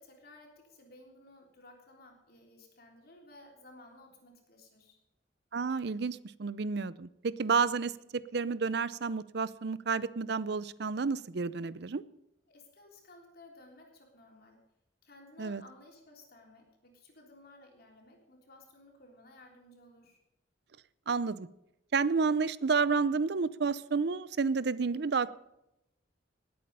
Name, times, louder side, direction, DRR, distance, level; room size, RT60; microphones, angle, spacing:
voice 1, 0.0-5.0 12.5-14.6 15.0-20.2, left 2 dB, 55° left, 1 dB, 3.4 m, -56 dB
voice 2, 5.5-12.0 15.4-15.6 21.1-21.5 21.9-25.3, right 5 dB, 60° right, 18 dB, 0.6 m, -30 dB
19.5 x 8.6 x 5.4 m, 0.86 s
head